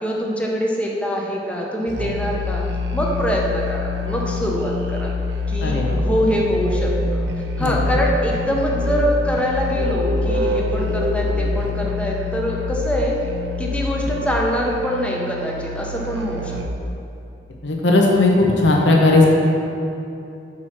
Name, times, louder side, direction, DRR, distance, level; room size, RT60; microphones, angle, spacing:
voice 1, 0.0-2.6 2.9-5.1 5.5-7.2 7.6-13.2 13.6-16.6, equal, 5° left, -2 dB, 0.8 m, -24 dB
Musical instrument, 1.9-16.9, left 2 dB, 75° right, 0.6 m, -25 dB
voice 2, 5.6-6.0 7.6-7.7 17.6-19.3, left 2 dB, 80° left, -1 dB, 0.9 m, -16 dB
6.0 x 4.7 x 5.8 m, 2.7 s
head